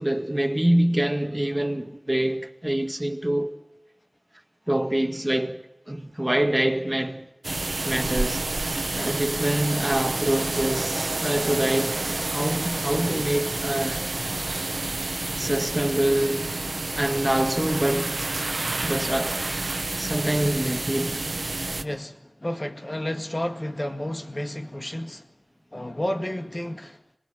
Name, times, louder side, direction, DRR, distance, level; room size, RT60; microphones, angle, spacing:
voice 1, 0.0-3.6 4.7-5.6 5.9-7.3 7.8-14.4 15.4-16.5 16.9-18.2 18.8-21.3, right 1 dB, 20° right, 2.0 m, -26 dB
sound 1, 7.4-21.8, right 2 dB, 75° right, 1.0 m, -29 dB
voice 2, 21.8-25.3 25.7-27.0, left 1 dB, 35° left, 2.1 m, -31 dB
25.5 x 20.0 x 7.8 m
wide cardioid pair, 40°, 0 cm